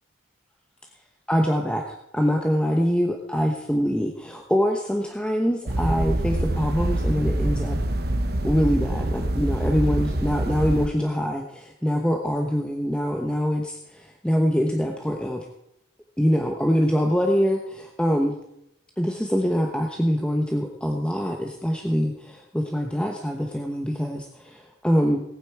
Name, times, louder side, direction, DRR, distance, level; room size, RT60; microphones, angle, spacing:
voice 1, 1.3-7.8 8.4-15.4 16.2-18.4 19.0-25.2, equal, 5° left, 2 dB, 1.0 m, -24 dB
sound 1, 5.7-10.9, right 1 dB, 55° right, 0.9 m, -25 dB
18.5 x 9.1 x 4.6 m, 0.79 s
head